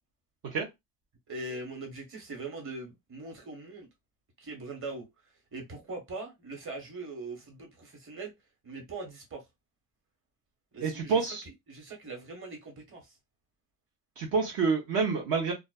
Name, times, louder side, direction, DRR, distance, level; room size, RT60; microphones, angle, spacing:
voice 1, 1.3-3.9 4.4-5.1 5.5-8.3 8.6-9.4 10.7-11.2 11.7-13.1, right 3 dB, 30° right, 1.2 m, -41 dB
voice 2, 10.8-11.4 14.2-15.5, right 5 dB, 60° right, 0.9 m, -28 dB
2.4 x 2.3 x 2.3 m
cardioid pair, 110°, 39 cm